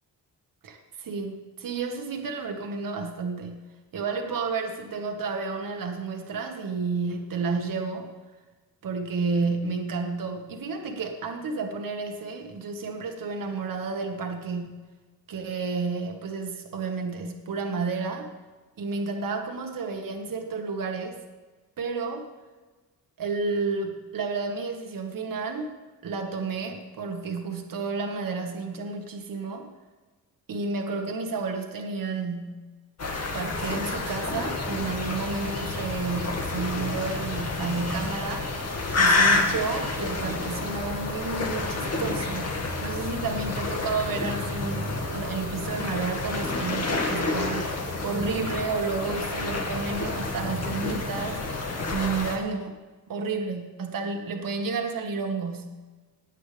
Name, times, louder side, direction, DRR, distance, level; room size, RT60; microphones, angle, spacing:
voice 1, 0.6-3.6 3.9-8.1 8.8-14.8 15.3-18.3 18.8-21.2 21.8-22.3 23.2-25.8 26.0-29.7 30.5-32.6 33.3-38.5 39.0-47.7 48.0-51.4 51.9-52.7 53.1-55.7, right 4 dB, 60° right, 3 dB, 1.7 m, -31 dB
sound 1, 33.0-52.4, left 3 dB, 40° left, 2.0 m, -29 dB
20.0 x 8.5 x 3.5 m, 1.3 s
cardioid pair, 110°, 37 cm